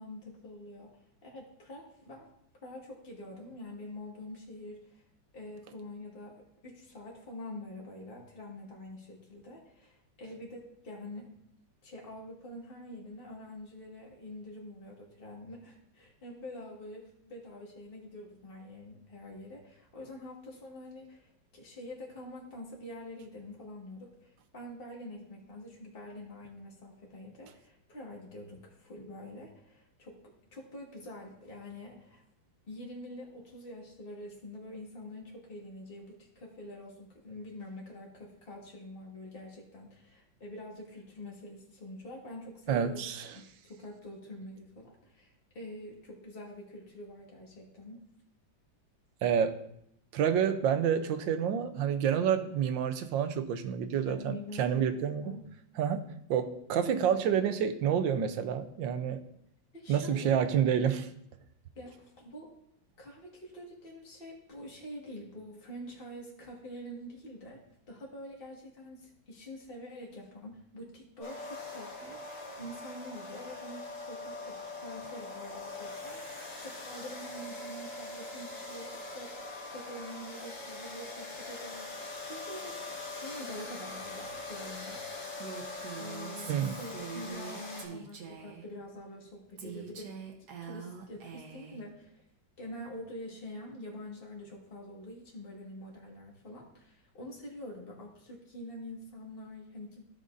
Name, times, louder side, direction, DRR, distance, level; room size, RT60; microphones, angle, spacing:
voice 1, 0.0-2.3 2.6-5.0 5.3-11.3 11.8-30.2 30.5-32.2 32.7-43.0 43.3-48.0 54.1-55.5 59.7-60.4 61.8-62.6 63.0-82.8 83.1-85.0 86.0-90.1 90.6-92.2 92.6-100.0, left 1 dB, 30° left, -2 dB, 1.9 m, -46 dB
voice 2, 42.7-43.4 49.2-49.6 50.1-55.3 55.8-56.0 56.3-59.2 59.9-61.1 86.5-86.8, right 8 dB, 80° right, 10 dB, 1.4 m, -28 dB
sound 1, 71.2-87.9, left 2 dB, 60° left, 2.6 m, -42 dB
Female speech woman speaking, 85.4-88.7 89.6-91.8, right 7 dB, 60° right, 1.5 m, -44 dB
15.5 x 5.2 x 2.6 m, 0.73 s
omnidirectional pair, 2.1 m